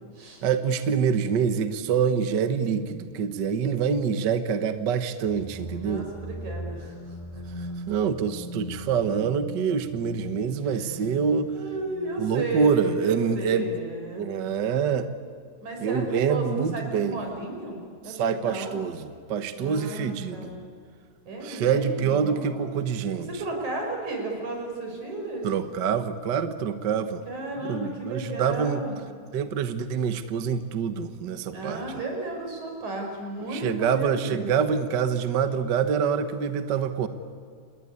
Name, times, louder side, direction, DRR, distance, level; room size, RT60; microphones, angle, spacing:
voice 1, 0.4-6.1 7.9-11.5 12.2-13.7 14.1-15.1 15.8-17.2 18.1-20.5 21.4-23.3 25.4-27.2 27.6-28.8 29.3-31.8 33.5-37.1, right 6 dB, 55° right, 10 dB, 1.3 m, -26 dB
sound 1, 5.2-12.9, equal, 10° left, 2.6 m, -40 dB
voice 2, 5.8-7.7 10.6-10.9 11.5-14.3 15.6-18.7 19.5-20.6 21.3-22.7 23.1-25.5 27.3-29.0 31.5-34.6, right 2 dB, 70° right, 2 dB, 6.6 m, -34 dB
28.0 x 20.0 x 9.7 m, 2.1 s
omnidirectional pair, 3.5 m